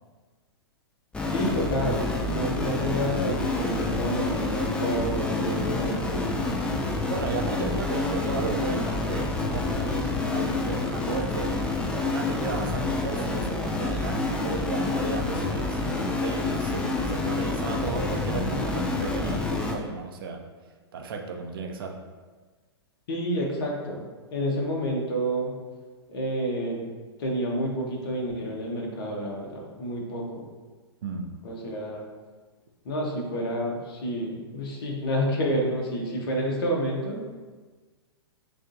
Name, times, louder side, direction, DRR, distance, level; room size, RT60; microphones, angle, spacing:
sound 1, 1.1-19.7, left 2 dB, 5° left, 0.4 m, -28 dB
voice 1, 1.3-6.4 23.1-24.0 24.3-25.5 26.1-26.8 27.2-30.4 31.4-32.0 32.8-37.2, equal, 55° left, -2 dB, 1.0 m, -29 dB
voice 2, 7.1-11.6 11.9-20.4 20.9-22.0 31.0-31.3, right 5 dB, 55° right, 2 dB, 0.6 m, -34 dB
6.2 x 2.6 x 2.6 m, 1.4 s
figure-of-eight pair, 105°, 14 cm